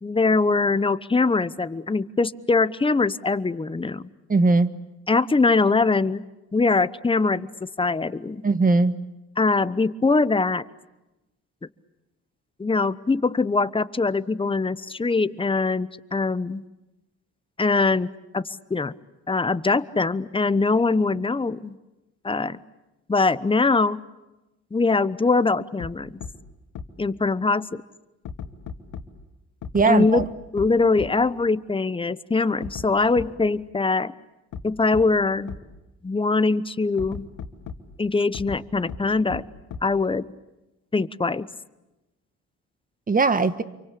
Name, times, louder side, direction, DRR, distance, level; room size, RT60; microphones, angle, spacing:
voice 1, 0.0-4.0 5.1-6.2 6.5-8.4 9.4-10.6 12.6-16.6 17.6-18.9 19.3-21.7 22.2-22.6 23.1-24.0 24.7-26.1 27.0-27.8 29.9-30.3 30.5-34.1 34.6-35.5 36.0-37.3 38.0-39.4 39.8-40.2 40.9-41.5, left 3 dB, 15° left, 15 dB, 1.0 m, -22 dB
voice 2, 4.3-4.7 8.4-9.0 29.7-30.2 43.1-43.6, right 3 dB, 30° right, 12 dB, 1.5 m, -19 dB
sound 1, 25.8-25.9 26.2-26.3 26.8-26.9 28.3-29.0 29.6-29.9 30.2-30.3 30.6-30.7 31.0-31.1 32.6-32.9 33.2-33.3 34.5-34.6 34.9-35.0 35.5-35.6 37.0-37.8 38.3-38.6 38.9-39.0 39.3-39.4 39.7-39.8, left 6 dB, 80° left, 2.4 m, -34 dB
28.0 x 24.0 x 8.5 m, 1.0 s
cardioid pair, 90°, 30 cm